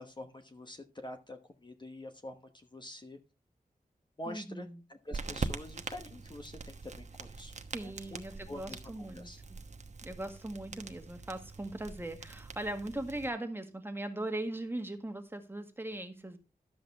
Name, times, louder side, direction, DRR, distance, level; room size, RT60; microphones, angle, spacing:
voice 1, 0.0-3.2 4.2-7.5 7.8-9.4, left 1 dB, 30° left, 6 dB, 1.1 m, -46 dB
voice 2, 4.3-4.8 7.7-9.6 10.0-16.4, right 1 dB, 15° right, 6 dB, 1.7 m, -39 dB
sound 1, 5.1-13.3, right 4 dB, 50° right, 1.1 m, -43 dB
12.0 x 7.8 x 3.5 m, 0.29 s
wide cardioid pair, 110°, 15 cm